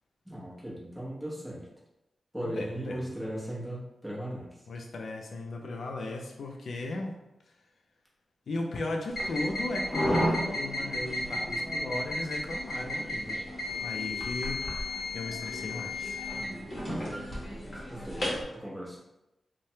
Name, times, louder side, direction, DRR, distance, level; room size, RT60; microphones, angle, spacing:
voice 1, 0.2-1.7 2.3-4.7 16.3-17.2 17.9-19.0, equal, 5° right, -6 dB, 0.8 m, -38 dB
voice 2, 2.4-3.1 4.7-7.2 8.5-13.4 13.8-16.2, left 2 dB, 65° left, 2 dB, 0.4 m, -36 dB
sound 1, 9.1-18.4, left 1 dB, 35° left, 0.9 m, -33 dB
3.2 x 2.1 x 2.7 m, 0.94 s
wide cardioid pair, 135°, 0 cm